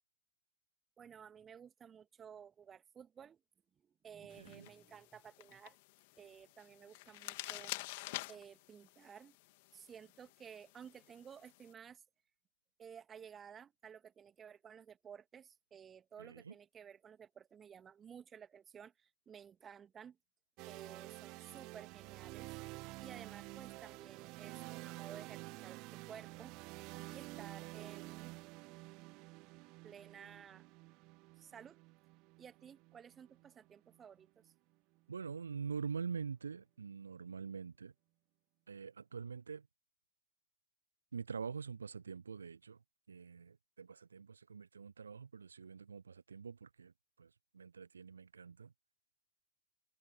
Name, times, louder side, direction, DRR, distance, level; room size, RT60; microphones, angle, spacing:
voice 1, 1.0-3.4 3.8-5.8 6.2-9.3 9.7-12.0 12.8-20.2 20.7-22.6 22.9-26.6 27.1-28.3 29.8-30.6 31.4-31.8 32.4-34.5, right 7 dB, 20° right, 2.7 m, -55 dB
sound 1, 4.3-11.7, left 23 dB, 50° left, 2.8 m, -49 dB
voice 2, 4.4-4.7 16.2-16.5 35.1-37.9 38.7-39.7 41.1-42.8 43.1-48.7, right 6 dB, 75° right, 0.8 m, -45 dB
sound 2, 20.6-34.4, right 24 dB, 40° right, 1.8 m, -50 dB
figure-of-eight pair, 90°, 0 cm